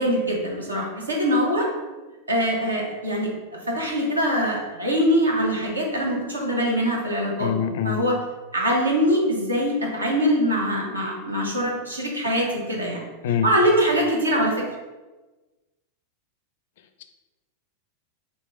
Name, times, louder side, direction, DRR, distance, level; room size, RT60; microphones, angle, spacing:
voice 1, 0.0-1.7 2.3-3.3 3.7-7.5 7.8-8.2 8.5-13.0 13.4-14.6, equal, 80° right, -2 dB, 1.1 m, -23 dB
voice 2, 7.4-8.0 13.2-13.5, left 8 dB, 55° left, 9 dB, 0.4 m, -24 dB
5.1 x 2.9 x 3.5 m, 1.2 s
figure-of-eight pair, 90°, 0 cm